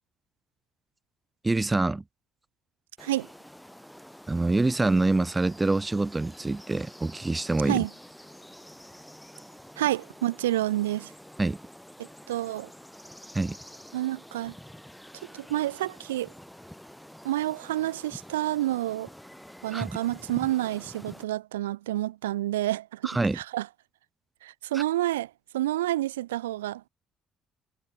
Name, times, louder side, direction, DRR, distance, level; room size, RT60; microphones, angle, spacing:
voice 1, 1.4-2.0 4.3-7.8 11.4-11.6 13.3-13.6 19.7-19.9 23.0-23.4 24.7-24.8, right 2 dB, 20° right, 3.0 m, -25 dB
sound 1, 3.0-21.2, equal, 5° left, 7.4 m, -48 dB
voice 2, 9.8-11.1 12.3-12.7 13.9-14.5 15.3-16.3 17.2-19.1 19.6-23.7 24.4-26.9, right 14 dB, 80° right, 1.1 m, -29 dB
figure-of-eight pair, 50°, 0 cm